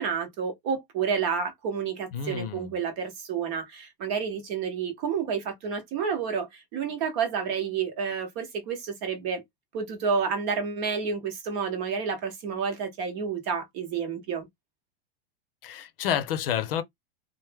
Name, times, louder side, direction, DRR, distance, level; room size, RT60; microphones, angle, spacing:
voice 1, 0.0-9.4 9.7-14.5, right 6 dB, 35° right, 0.9 m, -30 dB
voice 2, 2.1-2.7 15.6-16.8, left 9 dB, 70° left, 0.7 m, -29 dB
3.0 x 2.1 x 3.3 m
supercardioid pair, 170°, 29 cm